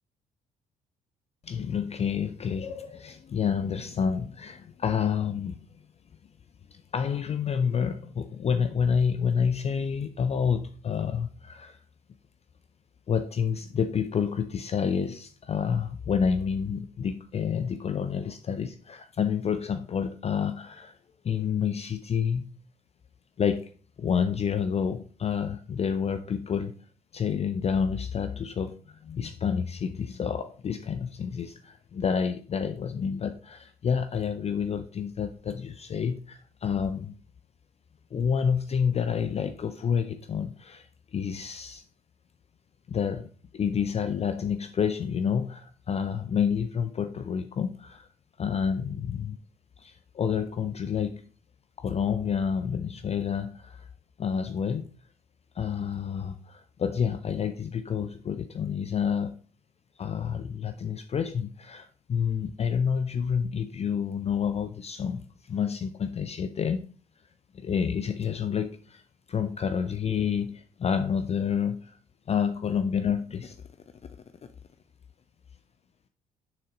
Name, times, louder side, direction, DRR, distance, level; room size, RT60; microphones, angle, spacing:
voice 1, 1.4-5.6 6.7-11.8 13.1-21.0 21.2-22.5 23.4-23.7 24.0-26.7 27.1-37.2 38.1-41.8 42.9-43.3 43.5-48.1 48.4-49.4 49.8-51.2 51.8-53.9 54.2-54.9 55.5-59.4 60.0-66.9 67.5-69.0 69.3-72.0 72.3-73.6, left 7 dB, 35° left, 0.5 m, -29 dB
6.9 x 6.0 x 3.8 m
figure-of-eight pair, 45°, 19 cm